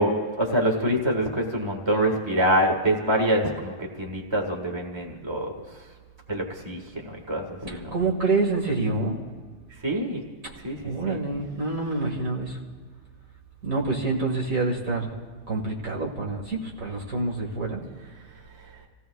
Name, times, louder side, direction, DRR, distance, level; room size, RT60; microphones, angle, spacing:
voice 1, 0.0-5.5 6.3-8.0 9.8-10.2 10.6-11.2, right 1 dB, 20° right, 1 dB, 1.7 m, -25 dB
voice 2, 7.7-9.1 10.4-10.5 10.8-12.6 13.6-15.1 15.5-17.8, right 3 dB, 70° right, -1 dB, 2.3 m, -27 dB
29.5 x 16.5 x 2.3 m, 1.5 s
omnidirectional pair, 1.5 m